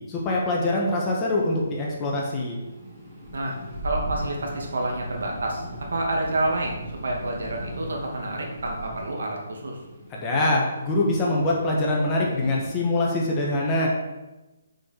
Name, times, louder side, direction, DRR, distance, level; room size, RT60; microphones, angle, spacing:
voice 1, 0.1-2.6 10.1-13.9, left 2 dB, 15° left, -3 dB, 1.4 m, -24 dB
sound 1, 1.1-12.6, right 1 dB, 10° right, 2.2 m, -39 dB
voice 2, 3.8-5.6 5.9-9.8, right 2 dB, 75° right, 0 dB, 2.3 m, -28 dB
6.5 x 5.0 x 6.6 m, 1.1 s
hypercardioid pair, 170°, 0 cm